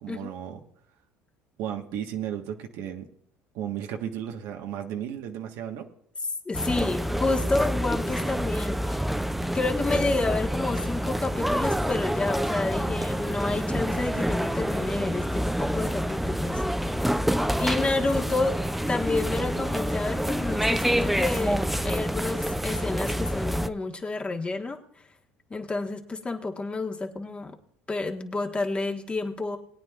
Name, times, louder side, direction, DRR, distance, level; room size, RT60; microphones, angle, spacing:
voice 1, 0.0-0.6 1.6-3.1 3.5-5.9, right 10 dB, 70° right, 3 dB, 1.4 m, -34 dB
voice 2, 6.4-9.0 9.5-16.6 17.6-18.6 18.9-24.8 25.5-27.6 27.9-29.6, left 3 dB, 20° left, 4 dB, 1.5 m, -29 dB
sound 1, 6.5-23.7, equal, ahead, 0.5 m, -27 dB
21.0 x 9.3 x 2.5 m, 0.65 s
supercardioid pair, 105°, 6 cm